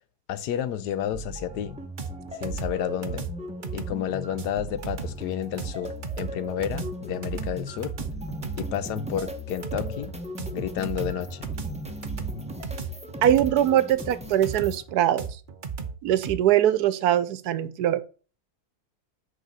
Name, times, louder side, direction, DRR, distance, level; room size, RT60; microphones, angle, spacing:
voice 1, 0.3-1.8 2.3-3.3 3.7-7.9 8.6-10.1 10.5-11.4, left 10 dB, 90° left, 1.3 m, -31 dB
sound 1, 1.1-14.8, equal, 5° right, 0.6 m, -38 dB
sound 2, 2.0-16.4, right 5 dB, 40° right, 0.7 m, -35 dB
voice 2, 13.2-15.3 16.0-18.0, right 11 dB, 80° right, 1.2 m, -22 dB
6.7 x 4.8 x 6.1 m
omnidirectional pair, 1.7 m